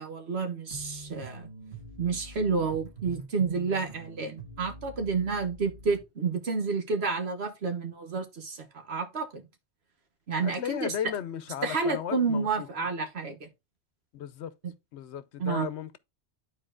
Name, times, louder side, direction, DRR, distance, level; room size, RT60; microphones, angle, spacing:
voice 1, 0.0-1.5 2.0-9.4 10.3-10.9 11.6-13.5 15.4-15.7, right 4 dB, 70° right, 1.4 m, -30 dB
sound 1, 0.7-6.0, right 2 dB, 45° right, 2.1 m, -45 dB
voice 2, 10.4-12.7 14.1-14.5 14.9-16.0, left 9 dB, 90° left, 0.9 m, -35 dB
12.0 x 4.3 x 2.4 m
omnidirectional pair, 1.1 m